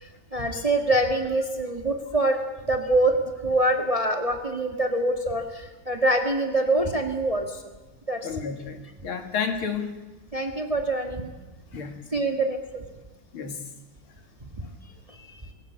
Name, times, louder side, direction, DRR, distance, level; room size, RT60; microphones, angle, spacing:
voice 1, 0.3-7.6 8.1-8.3 10.3-11.3 12.1-12.8 14.5-14.7 15.1-15.4, right 2 dB, 20° right, 4 dB, 1.4 m, -25 dB
voice 2, 8.2-9.9 11.7-11.9 13.3-13.6, left 6 dB, 70° left, 6 dB, 2.8 m, -30 dB
20.0 x 17.5 x 8.3 m, 1.1 s
omnidirectional pair, 2.4 m